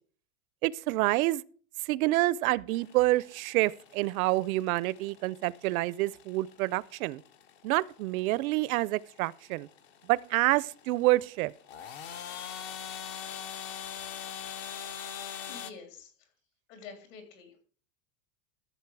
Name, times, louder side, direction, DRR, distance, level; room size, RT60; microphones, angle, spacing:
voice 1, 0.6-1.4 1.9-7.2 7.6-9.7 10.1-11.5, right 19 dB, 70° right, 0.6 m, -27 dB
sound 1, 2.7-15.7, left 8 dB, 30° left, 0.5 m, -44 dB
voice 2, 15.4-16.3 16.7-17.6, left 5 dB, 60° left, 3.5 m, -48 dB
14.0 x 7.3 x 4.7 m
supercardioid pair, 170°, 43 cm